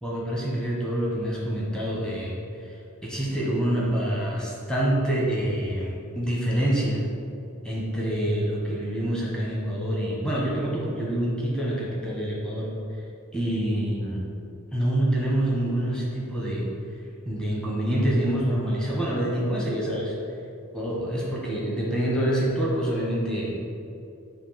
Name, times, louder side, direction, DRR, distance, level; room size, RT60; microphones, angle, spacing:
voice 1, 0.0-2.3 2.6-2.7 3.0-7.0 7.6-12.7 13.3-14.2 14.7-16.6 17.3-20.1 20.7-23.5, right 1 dB, 5° left, -6 dB, 1.1 m, -26 dB
7.8 x 2.7 x 5.7 m, 2.7 s
head